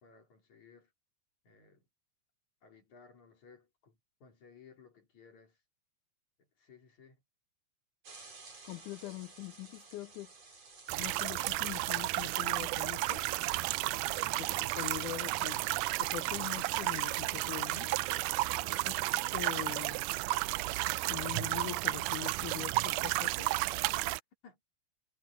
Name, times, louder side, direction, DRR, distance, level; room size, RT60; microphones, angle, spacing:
voice 1, 0.0-0.9 1.4-1.8 2.6-5.6 6.6-7.2 14.0-14.4 18.5-18.9 24.4-24.6, left 4 dB, 55° left, 5.4 m, -58 dB
sound 1, 8.0-15.6, right 4 dB, 45° right, 6.3 m, -56 dB
voice 2, 8.6-10.3 11.0-13.2 14.8-17.9 18.9-19.0 19.3-20.0 21.1-23.5, left 20 dB, 90° left, 1.7 m, -43 dB
sound 2, 10.9-24.2, right 19 dB, 85° right, 1.8 m, -33 dB
omnidirectional pair, 4.1 m